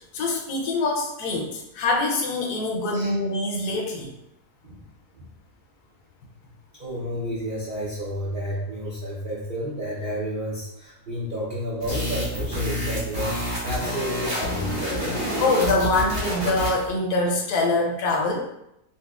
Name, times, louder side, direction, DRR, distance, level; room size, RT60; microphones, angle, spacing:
voice 1, 0.1-4.1 15.4-18.5, left 2 dB, 75° left, 0 dB, 1.2 m, -24 dB
voice 2, 6.8-14.7, equal, 75° right, -6 dB, 0.4 m, -31 dB
sound 1, 11.8-16.9, left 1 dB, 35° right, 1.2 m, -28 dB
4.0 x 2.1 x 2.4 m, 0.82 s
omnidirectional pair, 1.7 m